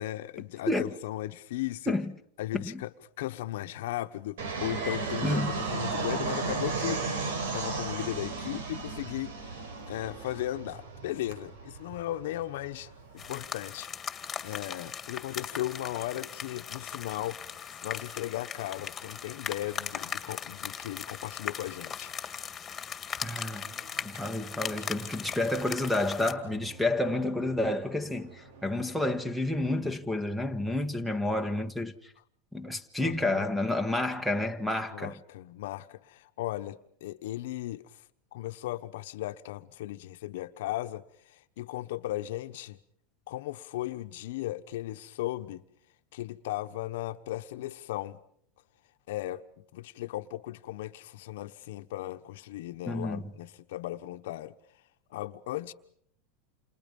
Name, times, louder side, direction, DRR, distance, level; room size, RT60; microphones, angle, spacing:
voice 1, 0.0-1.9 2.4-13.9 14.4-17.4 17.8-22.1 33.0-33.5 34.9-38.0 38.3-42.8 43.3-45.6 46.1-48.2 49.1-49.4 49.7-54.5 55.1-55.7, left 15 dB, 75° left, 1.2 m, -36 dB
Fixed-wing aircraft airplane, 4.4-13.4, right 4 dB, 80° right, 4.7 m, -35 dB
voice 2, 5.2-5.6 23.2-23.6 24.0-31.9 32.5-35.2 52.9-53.2, left 1 dB, ahead, 1.5 m, -30 dB
sound 1, 13.2-26.3, left 7 dB, 15° left, 2.2 m, -39 dB
sound 2, 23.6-29.9, right 4 dB, 60° right, 4.6 m, -51 dB
30.0 x 28.5 x 5.5 m
supercardioid pair, 150°, 0 cm